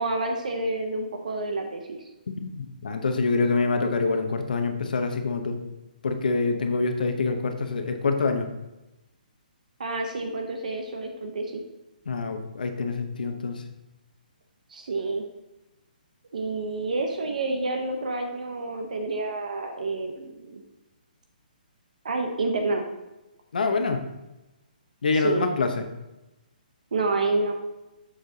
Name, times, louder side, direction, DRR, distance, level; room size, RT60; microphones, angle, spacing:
voice 1, 0.0-2.0 9.8-11.6 14.7-15.2 16.3-20.6 22.0-22.9 25.1-25.4 26.9-27.5, right 2 dB, 55° right, 4 dB, 0.8 m, -28 dB
voice 2, 2.3-5.6 6.0-8.5 12.1-13.6 23.5-24.0 25.0-25.8, left 4 dB, 60° left, 6 dB, 0.9 m, -26 dB
6.6 x 6.6 x 2.8 m, 1.0 s
hypercardioid pair, 180°, 5 cm